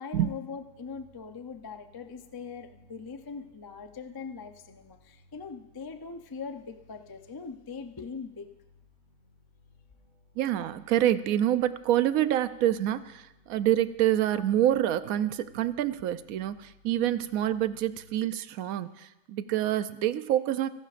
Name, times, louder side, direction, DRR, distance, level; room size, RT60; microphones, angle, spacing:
voice 1, 0.0-8.5, left 5 dB, 30° left, 6 dB, 0.4 m, -41 dB
sound 1, 0.5-19.2, left 2 dB, 75° left, 6.3 m, -61 dB
voice 2, 10.4-20.7, right 12 dB, 90° right, 14 dB, 1.0 m, -27 dB
28.5 x 11.0 x 2.5 m, 1.0 s
omnidirectional pair, 1.4 m